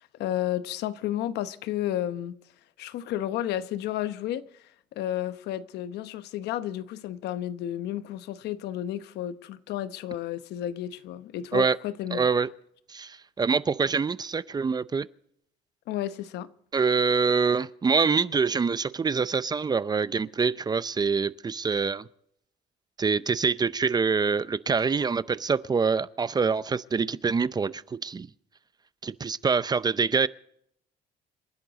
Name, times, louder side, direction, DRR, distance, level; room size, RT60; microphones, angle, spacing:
voice 1, 0.0-2.4 2.8-4.4 4.9-12.3 15.9-16.5, left 12 dB, 80° left, 0.9 m, -32 dB
voice 2, 12.1-12.5 12.9-15.1 16.7-22.1 23.0-28.3 29.0-30.3, right 5 dB, 25° right, 0.6 m, -25 dB
27.5 x 11.0 x 4.0 m
cardioid pair, 110°, 17 cm